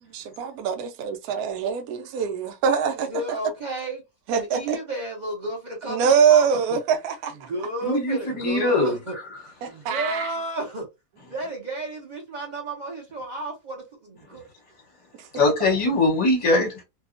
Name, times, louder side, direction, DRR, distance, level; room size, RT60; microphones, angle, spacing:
voice 1, 0.0-3.1 4.3-4.8 5.9-7.5 9.6-10.3 15.1-15.3, right 7 dB, 70° right, 1.0 m, -23 dB
voice 2, 3.1-4.0 4.3-6.5 7.4-9.2 9.7-10.8 11.3-14.4, right 1 dB, 45° right, 0.6 m, -32 dB
voice 3, 7.8-8.9 15.3-16.7, left 2 dB, 25° left, 0.8 m, -21 dB
2.7 x 2.2 x 2.5 m
omnidirectional pair, 1.8 m